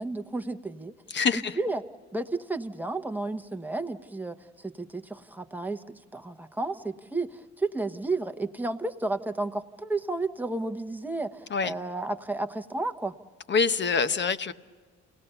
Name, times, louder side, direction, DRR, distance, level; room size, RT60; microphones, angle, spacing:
voice 1, 0.0-0.9 1.3-1.8 2.1-5.8 6.1-13.2, right 2 dB, 5° right, 7 dB, 1.1 m, -32 dB
voice 2, 1.1-1.6 11.5-11.7 13.5-14.5, left 5 dB, 40° left, 12 dB, 1.0 m, -25 dB
29.0 x 18.5 x 6.8 m, 1.5 s
cardioid pair, 90°, 30 cm